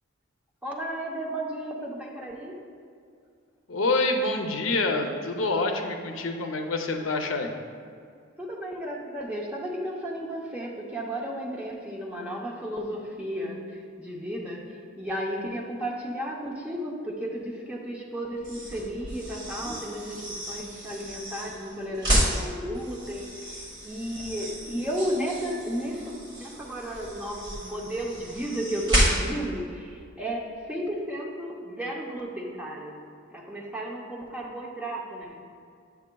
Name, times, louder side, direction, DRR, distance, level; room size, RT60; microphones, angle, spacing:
voice 1, 0.6-2.6 8.4-33.0 33.3-35.4, equal, 5° right, -3 dB, 0.7 m, -34 dB
voice 2, 3.7-7.5, left 2 dB, 75° left, 4 dB, 0.6 m, -27 dB
sound 1, 18.4-29.5, equal, 20° right, 1.6 m, -31 dB
9.5 x 6.8 x 2.3 m, 2.3 s
head